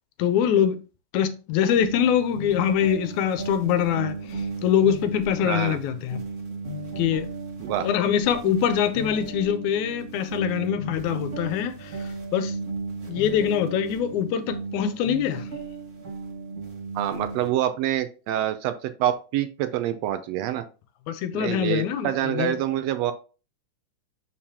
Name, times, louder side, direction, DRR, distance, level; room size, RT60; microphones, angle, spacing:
voice 1, 0.2-0.8 1.1-6.2 7.0-7.3 7.8-12.6 13.1-15.5 21.1-22.6, left 9 dB, 85° left, 2.1 m, -24 dB
sound 1, 1.7-17.5, right 3 dB, 30° right, 1.7 m, -35 dB
voice 2, 5.4-5.8 7.6-7.9 16.9-20.6 21.3-23.1, right 12 dB, 80° right, 1.6 m, -26 dB
6.6 x 5.6 x 2.8 m
omnidirectional pair, 3.3 m